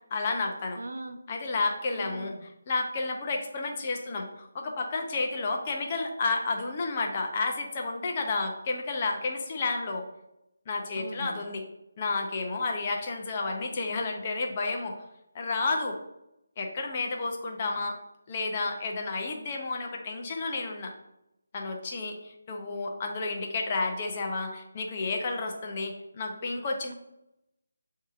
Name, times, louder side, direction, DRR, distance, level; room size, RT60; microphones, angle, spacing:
voice 1, 0.1-0.8 1.3-10.0 10.7-11.6 12.0-15.0 15.3-16.0 16.6-17.9 18.3-20.9 21.5-26.9, left 3 dB, 25° left, 1 dB, 0.5 m, -31 dB
voice 2, 0.8-1.2 2.0-2.4 11.0-11.4, right 2 dB, 85° right, 6 dB, 0.6 m, -39 dB
7.9 x 2.7 x 2.4 m, 0.86 s
figure-of-eight pair, 170°, 0 cm